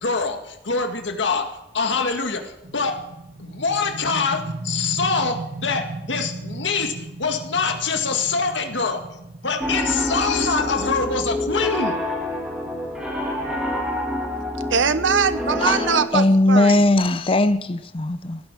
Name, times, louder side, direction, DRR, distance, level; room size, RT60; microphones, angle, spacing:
voice 1, 0.0-3.0 3.4-9.0 9.4-12.0, left 4 dB, 75° left, 1.9 m, -24 dB
sound 1, 2.6-14.1, right 2 dB, 55° right, 1.7 m, -37 dB
Piano, 9.6-16.0, left 1 dB, 5° right, 2.9 m, -27 dB
voice 2, 14.7-16.8, right 5 dB, 85° right, 0.9 m, -21 dB
voice 3, 16.1-18.4, left 2 dB, 30° left, 0.5 m, -18 dB
16.5 x 10.5 x 6.8 m
head